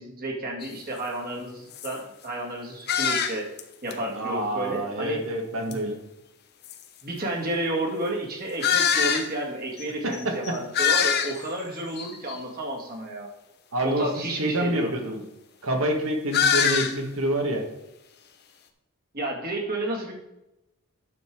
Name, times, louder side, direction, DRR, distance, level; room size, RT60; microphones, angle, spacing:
voice 1, 0.0-3.5 3.8-5.2 5.7-5.8 7.0-13.3 13.8-14.9 19.1-20.1, right 1 dB, 45° right, -1 dB, 2.1 m, -31 dB
sound 1, 0.6-0.7 1.3-1.4 1.7-1.9 2.9-3.6 3.9-4.0 5.7-5.8 6.6-6.7 8.6-9.3 9.8-9.9 10.1-10.2 10.4-11.5 12.0-12.4 16.3-17.0, left 7 dB, 50° left, 1.0 m, -23 dB
voice 2, 4.1-6.0 10.0-10.3 13.7-15.2 15.6-17.6, right 1 dB, 65° right, 3 dB, 1.8 m, -27 dB
9.5 x 6.8 x 4.6 m, 0.93 s
head